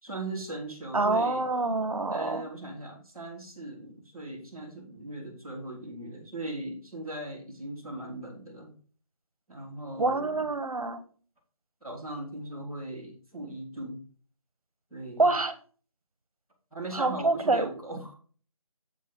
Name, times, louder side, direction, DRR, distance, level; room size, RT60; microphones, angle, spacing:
voice 1, 0.0-1.4 2.1-8.7 9.5-10.5 11.8-14.0 14.9-15.3 16.7-18.1, right 1 dB, ahead, -13 dB, 1.6 m, -39 dB
voice 2, 0.9-2.4 10.0-11.0 15.2-15.5 16.9-17.7, right 3 dB, 80° right, 11 dB, 1.3 m, -26 dB
8.0 x 5.6 x 4.7 m, 0.41 s
figure-of-eight pair, 175°, 18 cm